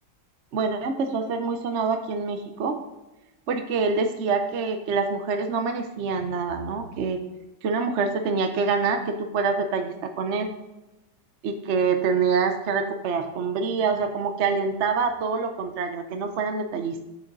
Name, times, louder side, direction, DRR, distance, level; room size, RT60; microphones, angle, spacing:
voice 1, 0.5-2.8 3.5-7.2 7.6-10.5 11.4-17.1, right 5 dB, 55° right, 6 dB, 0.8 m, -26 dB
8.7 x 7.6 x 4.0 m, 1.0 s
omnidirectional pair, 1.9 m